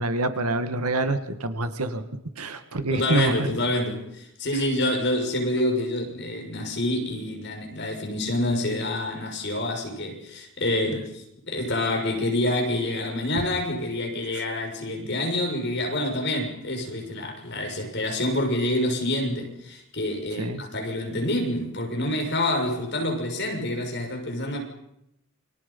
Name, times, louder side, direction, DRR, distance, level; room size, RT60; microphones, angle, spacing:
voice 1, 0.0-2.0 2.4-3.5 20.4-20.6, right 2 dB, 90° right, 9 dB, 2.1 m, -26 dB
voice 2, 2.9-24.6, left 1 dB, 50° left, 3 dB, 6.4 m, -27 dB
28.5 x 24.5 x 5.6 m, 0.80 s
head